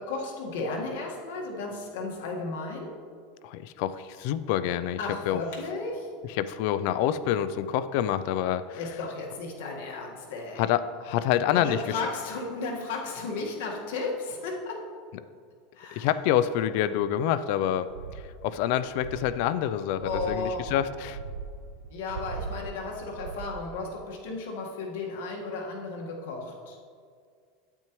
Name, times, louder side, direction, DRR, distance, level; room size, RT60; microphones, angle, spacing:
voice 1, 0.0-3.0 5.0-6.1 8.8-10.6 11.5-14.9 15.7-16.1 20.0-20.7 21.9-26.8, left 3 dB, 75° left, -1 dB, 1.6 m, -34 dB
voice 2, 3.4-5.0 5.3-5.4 6.2-9.0 10.6-12.0 15.9-21.2, left 11 dB, 55° left, 14 dB, 0.4 m, -27 dB
sound 1, 17.9-24.0, right 5 dB, 85° right, 0.5 m, -41 dB
8.8 x 8.8 x 3.1 m, 2.1 s
supercardioid pair, 165°, 0 cm